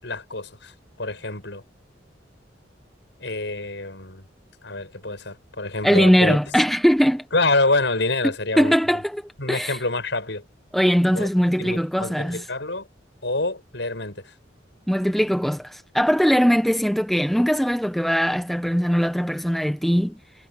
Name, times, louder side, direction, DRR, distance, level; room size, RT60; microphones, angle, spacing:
voice 1, 0.0-0.7 1.0-1.6 3.2-4.2 4.6-6.4 7.3-8.7 9.4-10.4 11.1-11.3 11.6-12.9 13.2-14.2, left 2 dB, 70° left, 6.8 m, -26 dB
voice 2, 5.8-7.2 8.6-9.8 10.7-12.5 14.9-20.2, equal, ahead, 1.0 m, -20 dB
head